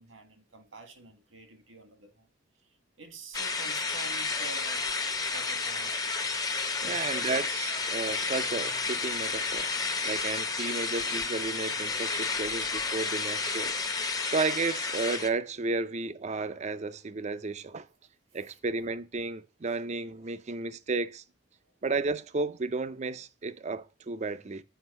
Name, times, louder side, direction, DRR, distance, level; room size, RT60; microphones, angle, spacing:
voice 1, 0.0-2.3 3.0-4.9 5.3-6.0 6.8-7.0 8.1-8.2 18.3-18.4 21.6-21.7, right 3 dB, 80° right, 1.7 m, -48 dB
sound 1, 3.3-15.3, left 4 dB, 20° left, 0.7 m, -31 dB
voice 2, 6.8-9.7 10.1-13.7 14.2-17.9 18.3-21.2 21.8-24.6, right 3 dB, 35° right, 0.5 m, -33 dB
7.9 x 5.1 x 5.4 m
head